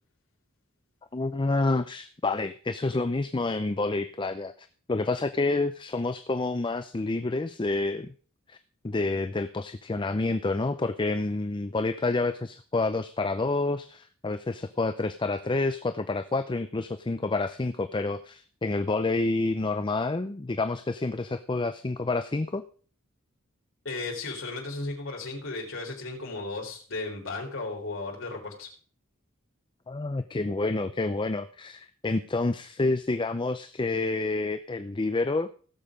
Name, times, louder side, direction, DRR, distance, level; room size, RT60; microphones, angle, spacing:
voice 1, 1.1-4.5 4.9-8.1 8.5-8.6 8.8-22.6 29.9-35.5, left 3 dB, 25° left, 10 dB, 0.5 m, -28 dB
voice 2, 23.8-28.7, left 3 dB, 75° left, 0 dB, 3.9 m, -35 dB
16.5 x 7.3 x 5.1 m, 0.43 s
head